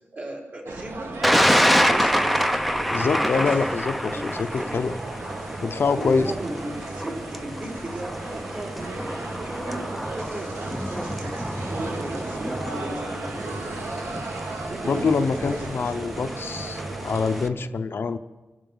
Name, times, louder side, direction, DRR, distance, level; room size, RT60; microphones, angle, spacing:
voice 1, 0.1-3.2 4.1-4.7 5.9-13.9 14.7-16.1, right 1 dB, 40° right, -3 dB, 4.6 m, -36 dB
sound 1, 0.7-17.5, right 3 dB, 80° right, 2.1 m, -36 dB
Thunder, 1.2-17.5, equal, ahead, 0.7 m, -27 dB
voice 2, 2.9-4.9 5.6-6.3 14.9-18.2, left 4 dB, 60° left, 9 dB, 0.7 m, -25 dB
24.5 x 12.5 x 3.9 m, 1.2 s
wide cardioid pair, 130°, 4 cm